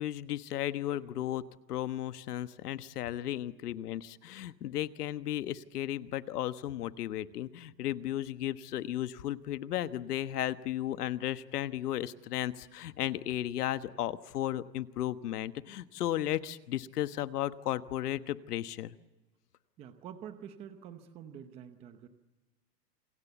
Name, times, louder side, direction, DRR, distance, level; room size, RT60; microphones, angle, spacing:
voice 1, 0.0-1.4 1.7-18.9, left 12 dB, 65° left, 12 dB, 1.4 m, -34 dB
voice 2, 19.8-22.1, right 9 dB, 10° right, 9 dB, 0.8 m, -47 dB
27.5 x 24.5 x 8.2 m, 1.1 s
supercardioid pair, 165°, 49 cm